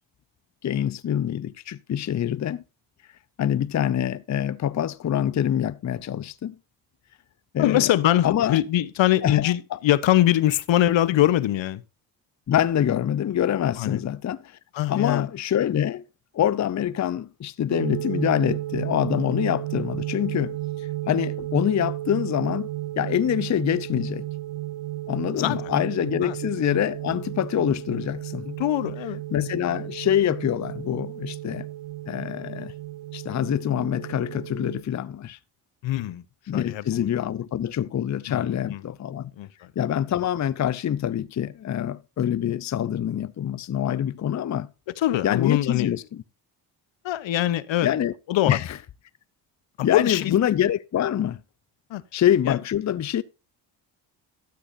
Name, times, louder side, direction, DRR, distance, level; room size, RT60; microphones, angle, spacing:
voice 1, 0.6-2.6 3.4-6.6 7.5-7.9 8.2-8.6 9.2-9.8 12.5-14.6 14.9-16.0 16.3-20.6 21.1-22.7 23.0-24.2 25.1-28.5 29.3-31.7 32.1-32.7 33.1-35.4 36.5-39.3 39.8-44.7 45.2-46.2 47.8-48.1 48.5-48.8 49.8-51.4 52.1-53.2, left 10 dB, 35° left, 0.6 m, -25 dB
voice 2, 7.6-11.8 13.8-14.0 14.7-15.3 25.4-25.6 26.2-26.3 28.5-29.2 35.8-36.2 36.5-37.1 38.3-38.8 39.4-39.7 45.0-45.9 47.0-47.9 48.3-48.6 49.8-50.4 51.9-52.0 52.5-52.6, left 13 dB, 65° left, 0.8 m, -23 dB
sound 1, 17.7-34.8, right 15 dB, 75° right, 0.6 m, -33 dB
13.0 x 8.2 x 2.6 m
supercardioid pair, 65°, 48 cm